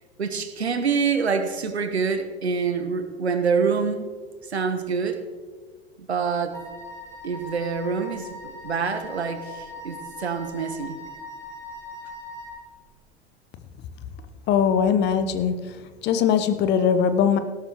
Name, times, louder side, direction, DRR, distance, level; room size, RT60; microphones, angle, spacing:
voice 1, 0.2-4.1 4.5-5.2 6.1-6.6 7.2-11.0, right 5 dB, 75° right, 9 dB, 1.3 m, -26 dB
Wind instrument woodwind instrument, 6.5-12.6, left 1 dB, 10° left, 3.4 m, -40 dB
voice 2, 14.5-15.7 16.0-17.4, left 7 dB, 35° left, 10 dB, 0.9 m, -21 dB
17.5 x 12.0 x 3.1 m, 1.5 s
figure-of-eight pair, 85°, 33 cm